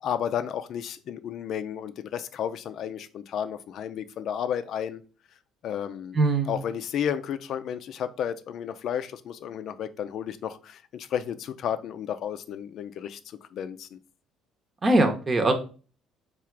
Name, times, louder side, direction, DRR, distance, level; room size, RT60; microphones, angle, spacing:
voice 1, 0.0-5.0 5.6-6.2 6.5-14.0, left 9 dB, 60° left, 0.4 m, -32 dB
voice 2, 6.1-6.6 14.8-15.5, right 2 dB, 30° right, 0.9 m, -21 dB
3.7 x 2.4 x 4.5 m
cardioid pair, 95°, 0 cm